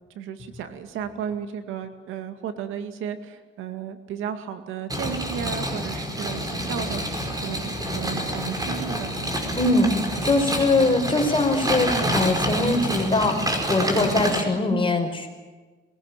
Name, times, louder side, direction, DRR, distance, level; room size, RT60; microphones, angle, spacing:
voice 1, 0.2-9.1, right 8 dB, 90° right, 9 dB, 2.1 m, -34 dB
sound 1, 4.9-14.4, equal, 20° right, 5.4 m, -28 dB
voice 2, 9.6-15.3, left 2 dB, 25° left, 4 dB, 5.2 m, -22 dB
22.5 x 17.0 x 9.0 m, 1.3 s
cardioid pair, 90°, 20 cm